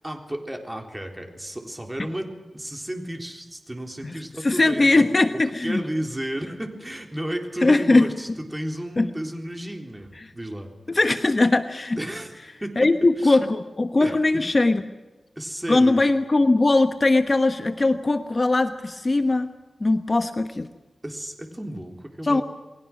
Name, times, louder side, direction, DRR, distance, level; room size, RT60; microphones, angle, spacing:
voice 1, 0.0-5.1 5.6-10.7 11.9-12.9 13.2-13.4 14.0-14.5 15.4-16.0 21.0-22.4, right 1 dB, 15° right, 3 dB, 3.8 m, -33 dB
voice 2, 4.4-5.8 7.6-8.1 9.0-9.1 10.9-12.0 12.8-14.8 15.7-19.5 19.8-20.7 22.2-22.4, left 2 dB, 35° left, 8 dB, 1.1 m, -20 dB
29.0 x 21.5 x 6.1 m, 1.2 s
wide cardioid pair, 95°, 0 cm